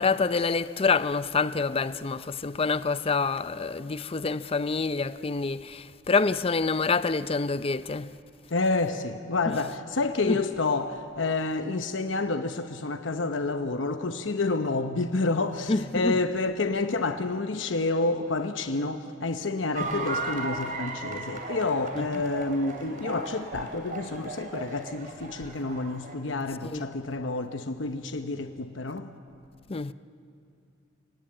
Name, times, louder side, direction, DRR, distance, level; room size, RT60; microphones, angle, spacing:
voice 1, 0.0-8.2 9.5-9.6 10.2-10.4 15.7-16.2 19.8-20.0 22.0-22.2 26.6-27.0 29.7-29.9, left 4 dB, 30° left, 0.5 m, -27 dB
voice 2, 8.5-29.1, left 3 dB, 85° left, 0.9 m, -29 dB
Horse race French Fry wins, 19.7-26.1, right 3 dB, 45° right, 3.2 m, -36 dB
28.5 x 18.0 x 8.8 m
head